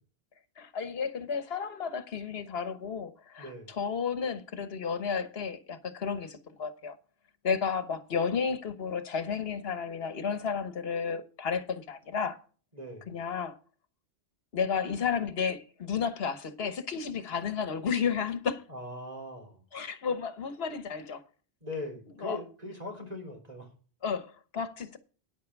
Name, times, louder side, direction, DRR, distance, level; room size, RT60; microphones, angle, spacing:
voice 1, 0.6-3.5 3.8-7.0 7.4-12.4 13.1-13.6 14.5-18.6 19.7-21.2 22.2-22.4 24.0-25.0, left 6 dB, 70° left, 1.4 m, -32 dB
voice 2, 3.4-3.7 12.7-13.1 18.7-19.6 21.6-23.7, left 1 dB, 40° right, 3.8 m, -40 dB
10.0 x 8.5 x 4.7 m
omnidirectional pair, 1.1 m